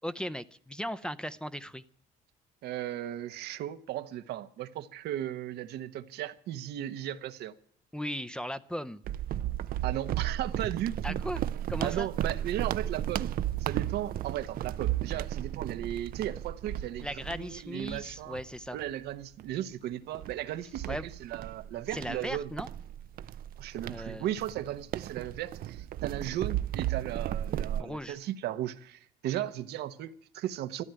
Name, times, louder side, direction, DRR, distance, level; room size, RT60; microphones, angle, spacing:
voice 1, 0.0-1.8 7.9-9.0 11.0-11.4 11.7-12.1 17.0-18.8 20.9-21.0 21.9-22.7 23.9-24.3 27.8-28.2, equal, 5° left, 0.6 m, -37 dB
voice 2, 2.6-7.5 9.8-11.2 11.8-13.3 13.6-18.4 18.7-22.5 23.6-30.8, right 12 dB, 80° right, 1.0 m, -36 dB
sound 1, 9.0-18.9 19.4-19.6 20.1-27.8, right 12 dB, 60° right, 0.6 m, -34 dB
13.5 x 11.0 x 8.9 m
cardioid pair, 110°, 17 cm